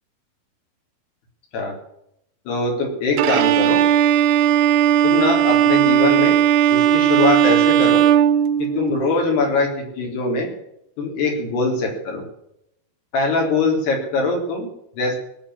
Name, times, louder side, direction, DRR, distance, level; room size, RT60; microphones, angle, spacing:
voice 1, 2.5-3.8 5.0-6.3 6.7-8.0 8.6-10.5 11.0-12.2 13.1-15.2, left 3 dB, 75° left, 1 dB, 5.9 m, -22 dB
Bowed string instrument, 3.2-9.1, right 10 dB, 80° right, 3.0 m, -16 dB
18.5 x 7.4 x 9.8 m, 0.78 s
omnidirectional pair, 4.6 m